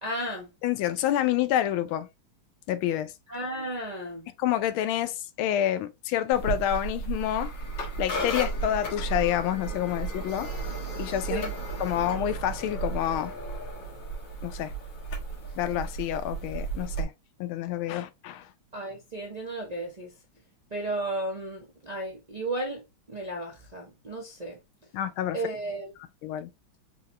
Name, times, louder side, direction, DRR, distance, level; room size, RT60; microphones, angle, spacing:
voice 1, 0.0-0.5 3.3-4.3 11.3-11.5 18.7-20.1 20.7-22.8 23.1-24.6 25.3-25.9, right 1 dB, 75° right, 0.3 m, -34 dB
voice 2, 0.6-2.1 2.7-3.1 4.4-7.5 8.0-10.5 11.0-11.4 11.8-13.3 14.4-14.7 15.6-17.1 17.4-18.5 24.9-25.4 26.2-26.5, left 11 dB, 90° left, 1.4 m, -28 dB
sound 1, 6.3-17.0, right 3 dB, 65° left, 2.2 m, -34 dB
4.7 x 2.9 x 3.2 m
omnidirectional pair, 2.2 m